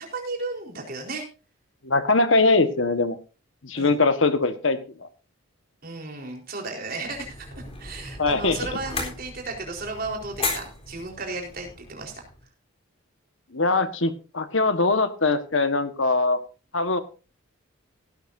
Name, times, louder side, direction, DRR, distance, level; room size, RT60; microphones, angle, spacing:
voice 1, 0.1-1.2 3.7-4.0 5.8-7.5 7.8-12.2, right 3 dB, 45° right, 1 dB, 4.2 m, -34 dB
voice 2, 1.8-3.2 3.6-5.1 8.2-8.6 13.5-16.4 16.7-17.0, left 3 dB, 65° left, 10 dB, 1.4 m, -22 dB
sound 1, 7.0-12.4, left 3 dB, 25° left, 3.8 m, -35 dB
17.0 x 12.5 x 2.7 m, 0.34 s
head